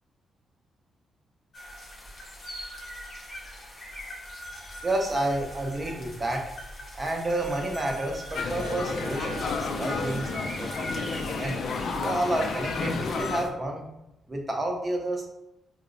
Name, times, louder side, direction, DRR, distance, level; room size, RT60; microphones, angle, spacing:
sound 1, 1.5-13.5, equal, 40° left, 0.8 m, -41 dB
voice 1, 4.8-6.4 6.9-11.6 12.0-13.9 14.3-15.3, right 1 dB, 25° right, 1 dB, 0.7 m, -30 dB
sound 2, 8.4-13.5, left 4 dB, 65° left, 0.3 m, -31 dB
4.4 x 2.0 x 2.5 m, 0.91 s
cardioid pair, 105°, 0 cm